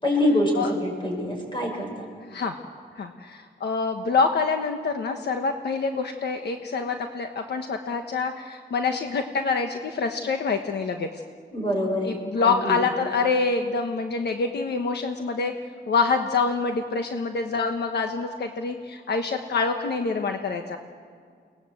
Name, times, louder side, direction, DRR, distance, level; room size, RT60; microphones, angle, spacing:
voice 1, 0.0-2.1 11.5-12.8, left 1 dB, 25° left, 1 dB, 6.4 m, -25 dB
voice 2, 2.2-2.6 3.0-11.1 12.0-15.5 15.9-20.8, left 4 dB, 75° left, 5 dB, 1.3 m, -26 dB
29.5 x 20.0 x 7.9 m, 2.1 s
wide cardioid pair, 165°, 18 cm